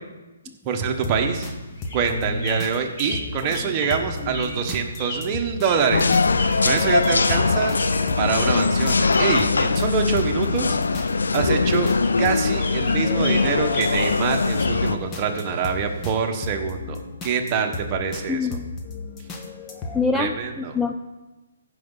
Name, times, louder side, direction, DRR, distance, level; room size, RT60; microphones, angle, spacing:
voice 1, 0.6-1.5 1.9-7.8 8.2-10.8 11.3-11.9 12.2-18.4 20.1-20.8, right 6 dB, 30° right, 3 dB, 1.4 m, -25 dB
sound 1, 0.9-1.5 1.8-5.7 6.0-20.0, left 3 dB, 20° left, 1.3 m, -34 dB
sound 2, 1.1-16.0, left 1 dB, 45° left, 3.4 m, -37 dB
sound 3, 5.9-15.0, left 4 dB, 80° left, 0.5 m, -21 dB
voice 2, 18.3-18.7 19.9-20.9, left 4 dB, 5° left, 4 dB, 0.4 m, -24 dB
15.0 x 6.0 x 4.1 m, 1.1 s
hypercardioid pair, 145°, 0 cm